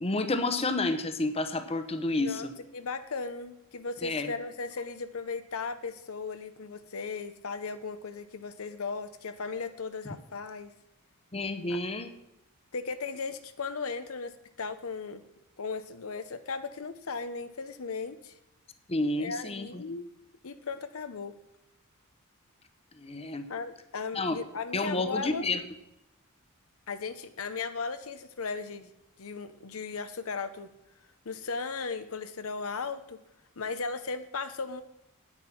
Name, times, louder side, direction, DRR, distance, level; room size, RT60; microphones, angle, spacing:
voice 1, 0.0-2.5 4.0-4.3 11.3-12.1 18.9-19.8 23.0-23.5 24.1-24.4 24.7-25.6, left 2 dB, 25° left, 9 dB, 0.9 m, -30 dB
voice 2, 2.2-10.7 11.7-11.8 12.7-15.2 15.6-18.3 19.2-20.0 20.4-21.3 23.5-25.5 26.9-28.9 29.2-30.7 31.3-33.2 33.6-34.8, left 4 dB, 70° left, 10 dB, 0.8 m, -36 dB
9.8 x 8.8 x 5.9 m, 0.86 s
head